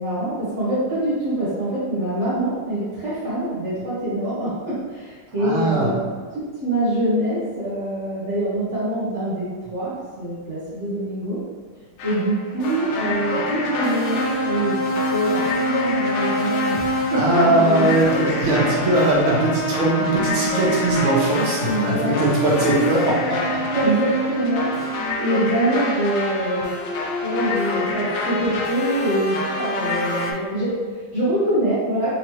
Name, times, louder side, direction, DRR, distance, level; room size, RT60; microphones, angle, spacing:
voice 1, 0.0-6.0 6.6-11.4 12.0-14.8 15.1-18.2 21.6-22.3 22.7-22.8 23.7-26.7 27.2-32.2, right 1 dB, 55° right, -10 dB, 0.8 m, -24 dB
voice 2, 5.4-5.9 17.1-23.6, right 2 dB, 80° right, -5 dB, 1.8 m, -20 dB
sound 1, 12.0-30.3, left 1 dB, 75° left, 1.2 m, -25 dB
4.6 x 2.8 x 3.0 m, 1.5 s
omnidirectional pair, 2.4 m